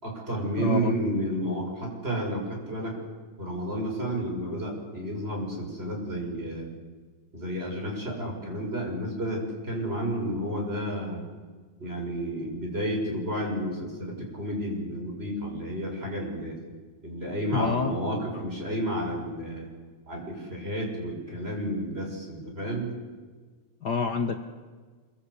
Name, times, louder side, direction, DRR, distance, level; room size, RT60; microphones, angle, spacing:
voice 1, 0.0-2.9 3.4-6.7 7.3-11.2 11.8-16.6 17.0-19.7 20.1-23.0, right 1 dB, 15° right, 0 dB, 6.8 m, -31 dB
voice 2, 0.6-0.9 17.5-18.0 18.3-18.5 23.8-24.4, left 5 dB, 75° left, 6 dB, 0.9 m, -28 dB
25.5 x 24.0 x 8.4 m, 1.4 s
omnidirectional pair, 3.7 m